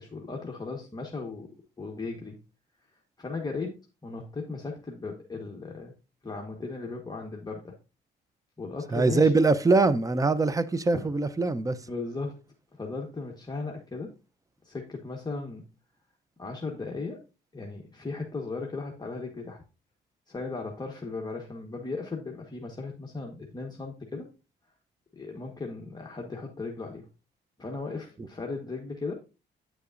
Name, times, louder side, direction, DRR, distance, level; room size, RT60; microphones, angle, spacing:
voice 1, 0.0-1.5 1.8-2.4 3.2-5.9 6.2-7.7 8.6-9.3 10.9-11.1 11.9-12.4 12.7-14.1 14.6-15.6 16.4-17.2 17.5-19.6 20.3-24.3 25.1-27.1 27.6-29.1, left 3 dB, 20° left, 1.3 m, -36 dB
voice 2, 8.9-11.8, right 3 dB, 15° right, 0.6 m, -23 dB
9.1 x 6.7 x 2.5 m
cardioid pair, 90°, 20 cm